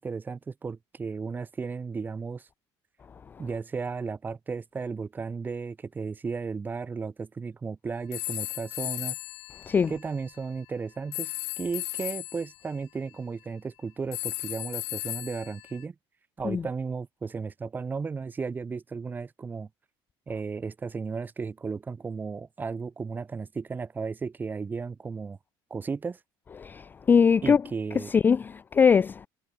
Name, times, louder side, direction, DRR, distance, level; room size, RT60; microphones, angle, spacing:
voice 1, 0.0-2.5 3.4-9.2 9.9-15.9 16.4-19.7 20.3-25.4 25.7-26.2 27.4-28.1, right 5 dB, 20° right, 4.7 m, -34 dB
sound 1, 8.1-10.4 11.1-12.5 14.1-15.8, left 23 dB, 75° left, 5.5 m, -35 dB
voice 2, 26.6-27.6 28.1-29.2, left 6 dB, 20° left, 0.4 m, -21 dB
cardioid pair, 160°, 10 cm